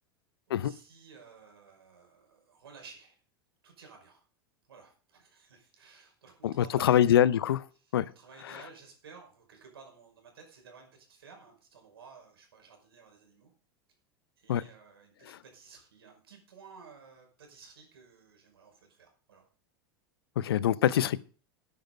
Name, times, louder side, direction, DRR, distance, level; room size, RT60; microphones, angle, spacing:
voice 1, 0.5-3.2 3.6-4.2 4.7-7.0 7.8-13.5 14.4-19.5, right 5 dB, 80° right, 5.4 m, -54 dB
voice 2, 6.8-7.6 7.9-8.0 14.5-14.6 20.4-21.2, left 10 dB, 80° left, 0.7 m, -24 dB
11.0 x 10.5 x 5.2 m
hypercardioid pair, 90°, 13 cm